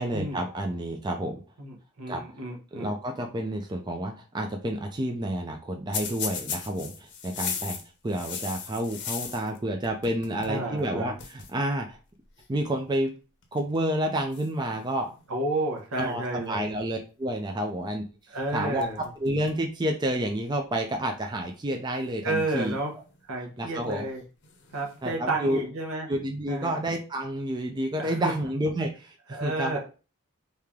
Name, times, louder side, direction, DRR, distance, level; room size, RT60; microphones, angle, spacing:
voice 1, 0.0-1.4 2.1-2.2 2.7-7.8 8.0-12.0 12.5-13.1 13.5-15.1 16.0-18.0 18.5-22.7 23.6-24.1 25.0-25.6 26.1-29.8, right 1 dB, 20° right, 3 dB, 0.4 m, -29 dB
voice 2, 1.6-2.9 10.5-11.1 15.3-16.7 18.3-19.0 22.2-22.9 23.2-24.2 24.7-26.1 26.5-26.8 28.0-28.3 29.3-29.8, right 2 dB, 75° right, 1 dB, 1.1 m, -31 dB
sound 1, 5.9-9.6 9.8-10.6 10.8-10.9 11.2-11.5 12.4-12.7 13.4-13.8 14.3-15.4 18.3-18.5 18.8-19.6 20.0-20.1 21.1-21.2 22.3-23.2 24.4-25.0, left 6 dB, 50° left, 0.7 m, -37 dB
3.2 x 2.8 x 3.6 m, 0.34 s
head